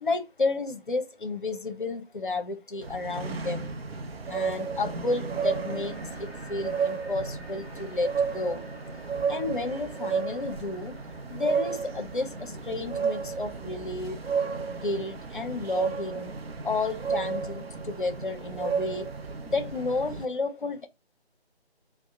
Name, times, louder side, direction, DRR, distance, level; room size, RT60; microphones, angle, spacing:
voice 1, 0.0-3.7 4.2-8.7 9.3-11.0 11.3-14.3 14.7-19.1 19.5-20.9, left 3 dB, 50° left, 0.7 m, -32 dB
sound 1, 2.8-20.3, right 5 dB, 65° right, 0.6 m, -32 dB
sound 2, 4.8-13.8, equal, 10° left, 0.8 m, -51 dB
2.9 x 2.1 x 3.6 m
figure-of-eight pair, 160°, 33 cm